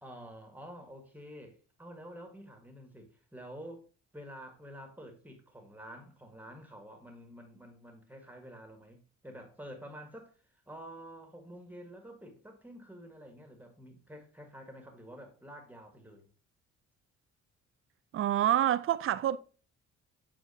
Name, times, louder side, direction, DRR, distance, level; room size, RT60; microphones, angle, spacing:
voice 1, 0.0-3.9 4.1-10.3 10.7-16.3, equal, 5° right, 1.7 m, -49 dB
voice 2, 18.1-19.4, right 11 dB, 45° right, 0.5 m, -27 dB
9.0 x 4.3 x 2.8 m
cardioid pair, 90°, 30 cm